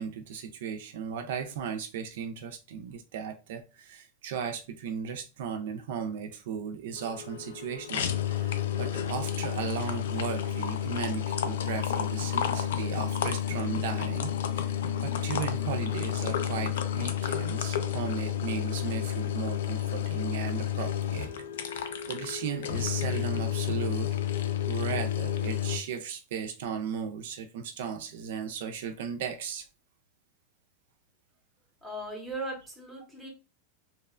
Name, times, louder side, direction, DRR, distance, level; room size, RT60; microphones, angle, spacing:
voice 1, 0.0-21.3 21.6-24.2 24.7-29.7, right 7 dB, 60° right, 0.3 m, -36 dB
sound 1, 7.0-25.8, left 10 dB, 85° left, 0.3 m, -31 dB
voice 2, 31.8-33.3, right 1 dB, ahead, 0.6 m, -38 dB
2.8 x 2.1 x 2.3 m
supercardioid pair, 175°, 0 cm